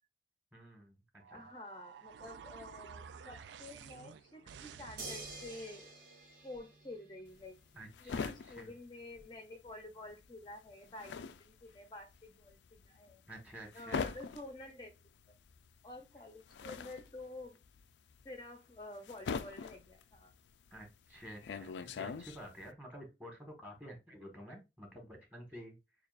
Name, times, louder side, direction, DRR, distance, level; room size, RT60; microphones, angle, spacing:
voice 1, 0.5-1.0 1.3-1.4 7.7-8.7 13.3-14.1 20.7-25.8, equal, 10° right, 1 dB, 1.4 m, -50 dB
sound 1, 1.2-5.8, right 6 dB, 80° right, 0.3 m, -52 dB
voice 2, 1.3-5.9 6.4-7.6 8.0-13.2 13.7-14.9 15.3-15.4 15.8-17.6 18.2-20.3, left 2 dB, 25° left, 3 dB, 0.6 m, -49 dB
sound 2, 5.0-7.5 9.2-9.3, right 2 dB, 50° right, 1.3 m, -48 dB
sound 3, 7.3-9.8 10.1-22.7, left 5 dB, 80° left, 0.4 m, -43 dB
6.6 x 2.4 x 2.4 m, 0.24 s
head